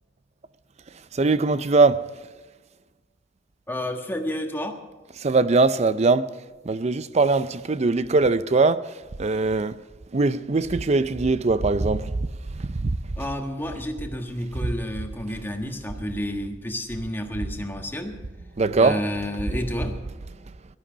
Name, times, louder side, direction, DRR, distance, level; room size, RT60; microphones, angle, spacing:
voice 1, 0.9-2.1 5.2-6.3 6.6-9.8 10.1-13.0 14.6-14.7 18.6-19.0, right 3 dB, 35° right, 0.5 m, -21 dB
voice 2, 3.7-4.8 13.2-18.2 18.8-20.0, left 1 dB, 10° left, 1.5 m, -30 dB
18.0 x 13.0 x 5.2 m
head